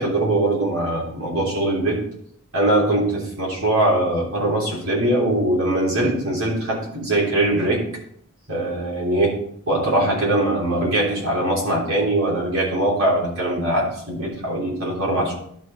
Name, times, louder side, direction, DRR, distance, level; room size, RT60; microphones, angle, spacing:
voice 1, 0.0-2.0 2.5-7.8 8.5-9.3 9.7-15.4, right 1 dB, 70° right, -4 dB, 3.4 m, -21 dB
11.5 x 5.0 x 4.0 m, 0.67 s
head